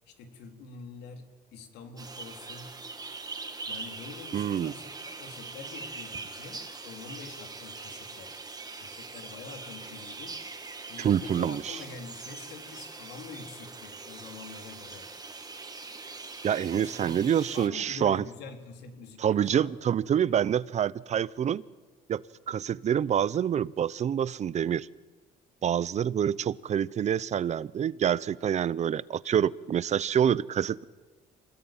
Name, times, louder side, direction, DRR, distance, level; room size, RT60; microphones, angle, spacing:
voice 1, 0.1-2.7 3.7-8.3 8.8-10.4 10.9-15.1 16.7-19.7, left 4 dB, 85° left, 5 dB, 3.6 m, -46 dB
sound 1, 2.0-17.7, right 3 dB, 25° right, 2.7 m, -42 dB
voice 2, 4.3-4.7 11.0-11.8 16.4-18.2 19.2-21.6 22.1-24.9 25.6-30.8, right 9 dB, 45° right, 20 dB, 0.7 m, -27 dB
26.5 x 19.5 x 9.0 m, 1.3 s
cardioid pair, 110°, 17 cm